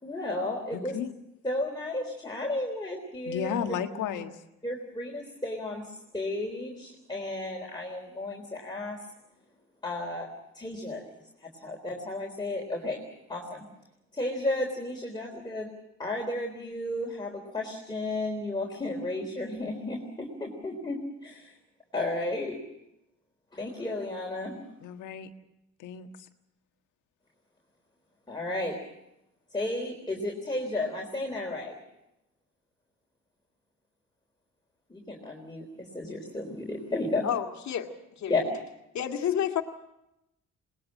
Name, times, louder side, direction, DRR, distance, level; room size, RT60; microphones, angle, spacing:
voice 1, 0.0-1.0 1.4-3.5 4.6-9.0 9.8-10.3 10.5-11.1 11.4-13.0 13.3-13.6 14.1-15.7 16.0-21.5 21.9-22.6 23.5-24.6 28.3-28.8 29.5-31.7 34.9-37.3 38.3-38.4, left 2 dB, 15° left, 0 dB, 3.7 m, -33 dB
voice 2, 0.7-1.1 3.3-4.4 24.8-25.3 25.8-26.1, left 8 dB, 85° left, 6 dB, 1.6 m, -33 dB
voice 3, 37.2-38.3 38.9-39.6, left 9 dB, 65° left, 4 dB, 2.2 m, -30 dB
21.5 x 20.0 x 7.5 m, 0.87 s
cardioid pair, 90°, 30 cm